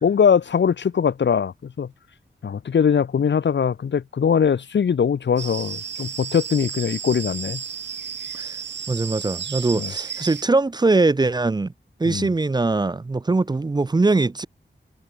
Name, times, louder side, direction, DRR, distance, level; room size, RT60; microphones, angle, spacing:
voice 1, 0.0-1.9 2.4-7.6 9.8-9.9 12.1-12.3, left 7 dB, 85° left, 1.6 m, -21 dB
sound 1, 5.4-10.4, right 7 dB, 80° right, 1.4 m, -33 dB
voice 2, 8.9-11.7 12.0-14.5, right 3 dB, 25° right, 0.6 m, -21 dB
wide cardioid pair, 140°, 18 cm